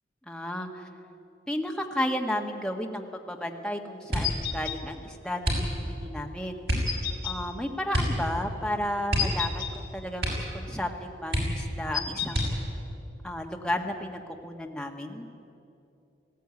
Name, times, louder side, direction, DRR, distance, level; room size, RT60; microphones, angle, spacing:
voice 1, 0.3-0.9 1.5-6.7 7.2-12.5 13.2-15.3, left 1 dB, 5° left, 1 dB, 1.5 m, -33 dB
sound 1, 4.1-4.5 5.4-6.0 6.6-7.0 7.9-8.3 8.5-8.6 9.1-9.8 10.2-10.6 10.9-11.0 11.3-11.8 12.3-12.8 13.5-14.2 14.5-14.9, equal, 70° right, 6.4 m, -29 dB
sound 2, 4.2-4.8 6.9-7.4 9.2-9.7 11.9-12.5, left 9 dB, 50° left, 2.0 m, -31 dB
19.0 x 16.5 x 9.6 m, 2.7 s
head